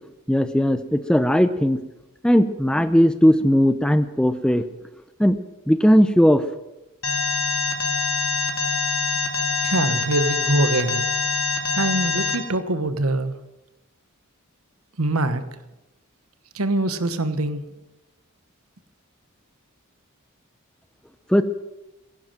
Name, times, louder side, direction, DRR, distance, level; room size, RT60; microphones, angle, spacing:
voice 1, 0.3-1.8 2.2-4.6 5.2-5.4 5.7-6.4 21.3-21.4, equal, 5° left, 12 dB, 0.6 m, -18 dB
Alarm, 7.0-12.4, left 4 dB, 80° left, 2.4 m, -24 dB
voice 2, 9.6-11.0 11.7-13.3 15.0-15.4 16.5-17.6, right 2 dB, 85° right, 11 dB, 1.3 m, -23 dB
16.0 x 11.0 x 7.5 m, 1.0 s
head